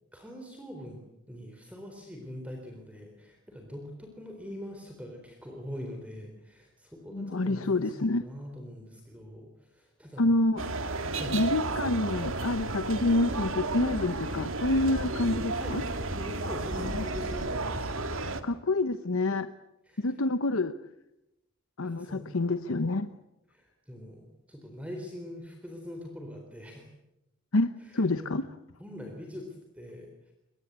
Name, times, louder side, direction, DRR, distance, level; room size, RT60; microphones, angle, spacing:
voice 1, 0.1-1.0 1.3-10.3 11.1-11.4 15.0-15.1 15.5-15.8 16.1-17.9 19.9-20.2 21.8-22.4 23.5-26.9 27.8-28.4 28.8-30.3, left 1 dB, 5° right, 2 dB, 3.9 m, -43 dB
voice 2, 7.1-8.2 10.2-10.6 11.3-15.8 16.8-17.0 18.4-19.5 20.0-20.8 21.8-23.1 27.5-28.4, left 2 dB, 75° left, 11 dB, 1.0 m, -27 dB
sound 1, 10.6-18.4, right 3 dB, 65° right, 2.2 m, -33 dB
29.5 x 23.5 x 8.2 m, 0.89 s
head